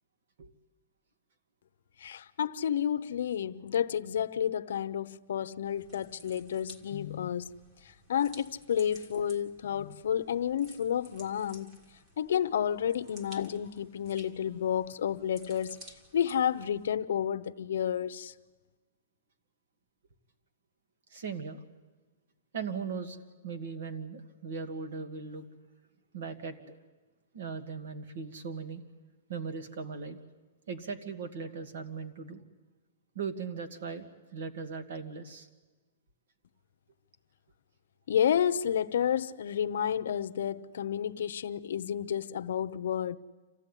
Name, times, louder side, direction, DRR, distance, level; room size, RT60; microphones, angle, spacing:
voice 1, 2.0-7.5 8.1-11.8 12.2-15.8 16.1-18.3 38.1-43.2, left 9 dB, 70° left, 0.8 m, -30 dB
sound 1, 5.6-16.9, equal, 25° right, 2.0 m, -55 dB
voice 2, 21.1-21.6 22.5-23.2 23.4-25.5 26.1-26.8 27.3-28.8 29.3-30.2 30.7-32.4 33.2-35.5, right 5 dB, 60° right, 2.1 m, -38 dB
26.5 x 15.5 x 9.9 m
hypercardioid pair, 175°, 0 cm